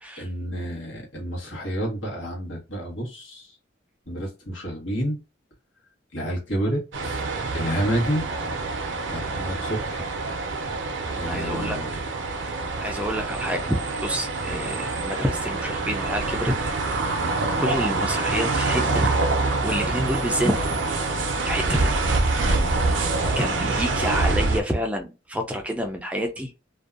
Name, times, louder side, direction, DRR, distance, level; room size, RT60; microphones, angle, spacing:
voice 1, 0.2-3.5 4.1-5.2 6.1-7.2 7.5-8.2 9.1-10.0 11.2-11.9 22.4-22.7, equal, 85° left, 1.2 m, -29 dB
sound 1, 6.9-24.6, right 3 dB, 75° right, 0.5 m, -26 dB
voice 2, 11.2-11.8 12.8-16.6 17.6-19.1 19.6-20.5 21.5-22.0 23.4-26.5, equal, 5° right, 0.3 m, -28 dB
2.6 x 2.2 x 2.4 m
head